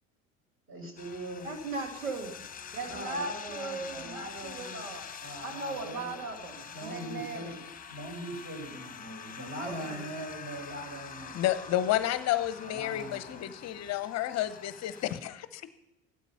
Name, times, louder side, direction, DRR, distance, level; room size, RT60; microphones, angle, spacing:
voice 1, 0.7-1.5 2.8-4.9 5.2-6.3 6.7-7.6 7.9-11.4 12.6-13.5, right 1 dB, 30° right, 2 dB, 5.5 m, -41 dB
sound 1, 1.0-15.1, left 6 dB, 20° left, 1.3 m, -45 dB
voice 2, 1.4-2.3 2.7-5.0 5.4-7.6 9.6-10.0, right 3 dB, 85° right, 4 dB, 1.8 m, -38 dB
voice 3, 11.3-15.7, left 13 dB, 40° left, 14 dB, 0.8 m, -31 dB
15.0 x 12.5 x 5.6 m, 0.89 s
figure-of-eight pair, 70°, 39 cm